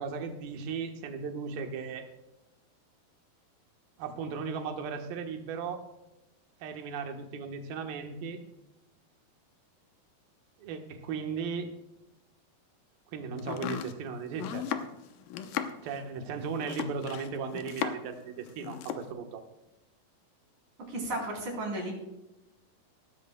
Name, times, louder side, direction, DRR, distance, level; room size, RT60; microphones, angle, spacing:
voice 1, 0.0-2.1 4.0-5.8 6.6-8.4 10.6-11.7 13.1-14.7 15.8-19.4, right 5 dB, 75° right, 4 dB, 3.0 m, -36 dB
Domestic sounds home sounds, 13.4-18.2 18.5-19.1, left 9 dB, 75° left, 2.4 m, -36 dB
voice 2, 20.9-21.9, right 1 dB, 60° right, -1 dB, 5.3 m, -34 dB
18.0 x 13.5 x 2.2 m, 0.95 s
omnidirectional pair, 4.2 m